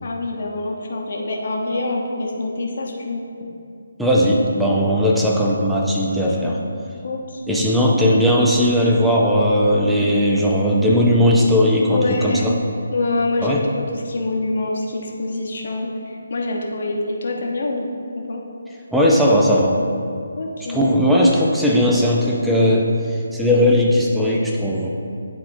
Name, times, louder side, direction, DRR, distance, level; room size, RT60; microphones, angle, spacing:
voice 1, 0.0-3.2 6.4-6.5 7.0-7.7 11.9-12.6 12.9-18.4 20.4-20.9, left 2 dB, 50° left, -1 dB, 1.0 m, -25 dB
voice 2, 4.0-6.6 7.5-12.5 13.4-13.6 18.9-19.8 20.7-24.9, equal, ahead, -4 dB, 0.6 m, -17 dB
10.5 x 4.2 x 2.7 m, 2.5 s
figure-of-eight pair, 145°, 0 cm